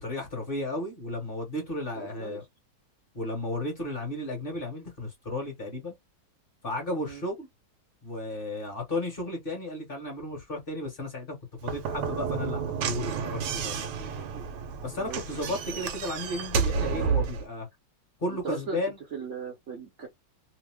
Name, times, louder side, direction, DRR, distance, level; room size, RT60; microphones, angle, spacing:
voice 1, 0.0-2.4 3.1-6.0 6.6-7.5 8.0-14.5 14.8-17.7 18.2-19.0, left 1 dB, 35° left, 1.2 m, -34 dB
voice 2, 2.0-2.4 7.0-7.2 15.0-15.2 15.5-15.8 18.3-18.8 19.1-20.1, right 5 dB, 55° right, 0.8 m, -38 dB
Slam / Knock, 11.6-17.4, right 6 dB, 75° right, 1.3 m, -31 dB
3.0 x 2.0 x 3.4 m
omnidirectional pair, 2.0 m